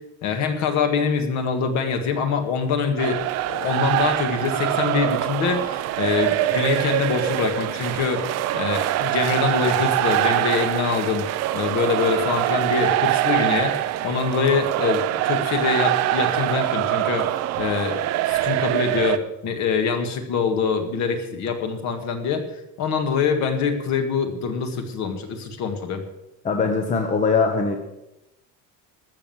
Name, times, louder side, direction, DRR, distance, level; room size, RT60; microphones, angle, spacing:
voice 1, 0.2-3.2 3.5-8.3 8.5-18.0 18.3-22.4 22.8-26.0, left 5 dB, 50° left, 6 dB, 1.9 m, -24 dB
sound 1, 3.0-19.2, right 15 dB, 45° right, 0.6 m, -24 dB
voice 2, 26.4-27.8, left 4 dB, 20° left, 4 dB, 1.0 m, -21 dB
13.5 x 7.3 x 7.8 m, 0.92 s
cardioid pair, 175°, 36 cm